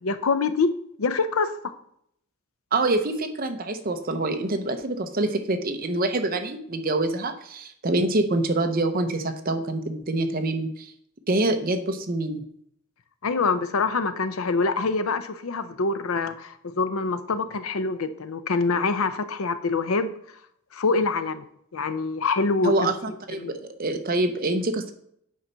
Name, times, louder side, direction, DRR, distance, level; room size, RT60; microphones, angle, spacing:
voice 1, 0.0-0.7 1.0-1.7 13.2-20.1 20.7-21.4 21.7-23.6, left 4 dB, 75° left, 11 dB, 0.6 m, -25 dB
voice 2, 2.7-10.9 11.3-12.4 22.6-24.9, right 2 dB, 40° right, 7 dB, 0.8 m, -26 dB
8.6 x 4.0 x 5.6 m, 0.70 s
head